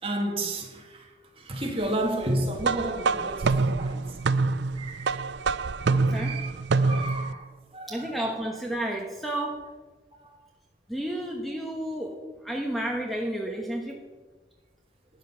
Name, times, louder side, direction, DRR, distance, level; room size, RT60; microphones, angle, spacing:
voice 1, 0.0-1.1 1.4-5.2 6.1-6.5 6.8-7.4 7.7-8.1, right 1 dB, 30° right, 2.0 m, -32 dB
sound 1, 2.6-7.3, right 4 dB, 75° right, 0.4 m, -26 dB
voice 2, 5.9-6.4 7.9-9.6 10.9-12.2 12.4-14.0, right 1 dB, ahead, 1.1 m, -31 dB
12.5 x 9.4 x 5.7 m
head